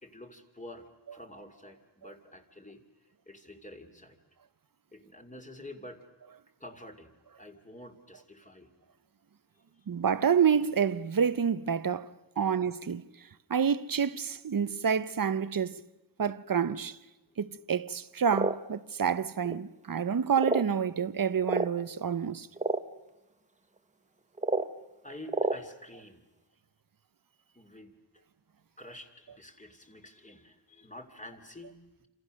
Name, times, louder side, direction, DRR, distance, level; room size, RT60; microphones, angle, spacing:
voice 1, 0.0-2.8 3.3-4.2 4.9-6.0 6.6-8.7 17.3-17.4 25.0-26.2 27.5-27.9 28.8-32.1, left 1 dB, 15° left, 2.6 m, -48 dB
voice 2, 9.9-12.1 12.4-13.1 13.5-15.8 16.2-17.0 17.4-22.5, right 7 dB, 45° right, 0.8 m, -28 dB
sound 1, 18.3-18.6 19.4-19.5 20.4-20.7 21.4-21.7 22.6-22.8 24.4-24.7 25.3-25.6, right 2 dB, 15° right, 0.9 m, -28 dB
29.0 x 27.0 x 6.4 m
wide cardioid pair, 130°, 47 cm